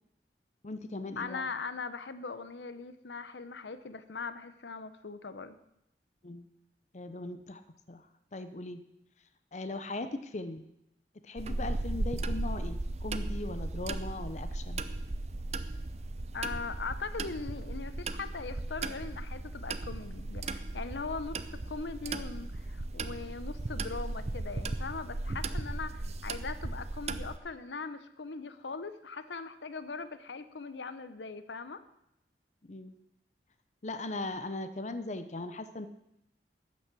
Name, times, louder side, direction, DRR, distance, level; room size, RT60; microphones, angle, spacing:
voice 1, 0.6-1.5 6.2-6.5 6.9-7.6 7.9-8.0 8.3-8.8 9.5-10.6 11.2-14.8 32.6-32.9 33.8-35.9, left 2 dB, 40° left, 10 dB, 0.7 m, -39 dB
voice 2, 1.2-5.6 16.3-31.8, left 4 dB, 85° left, 12 dB, 0.8 m, -40 dB
sound 1, 11.4-27.4, right 2 dB, 40° right, 0.6 m, -36 dB
13.0 x 8.5 x 6.1 m, 0.82 s
head